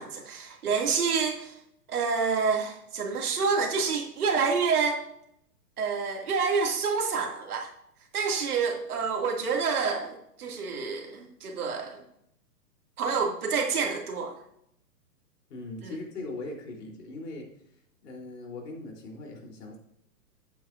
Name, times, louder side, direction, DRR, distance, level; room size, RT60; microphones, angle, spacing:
voice 1, 0.0-1.6 1.9-5.0 5.8-7.7 8.1-12.0 13.0-14.4 15.8-15.9, right 5 dB, 65° right, 1 dB, 2.5 m, -28 dB
voice 2, 15.5-17.5 18.0-19.8, left 2 dB, 70° left, 0 dB, 3.7 m, -40 dB
11.5 x 8.8 x 2.6 m, 0.73 s
hypercardioid pair, 170°, 48 cm